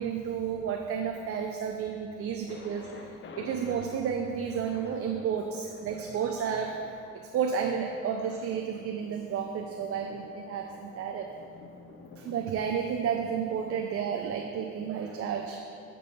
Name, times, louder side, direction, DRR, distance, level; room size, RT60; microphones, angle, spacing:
voice 1, 0.0-11.3 12.2-15.6, right 7 dB, 50° right, 3 dB, 0.5 m, -32 dB
Thunder, 2.5-14.3, left 4 dB, 40° left, 0.5 m, -51 dB
7.5 x 5.3 x 2.7 m, 2.3 s
cardioid pair, 90°, 30 cm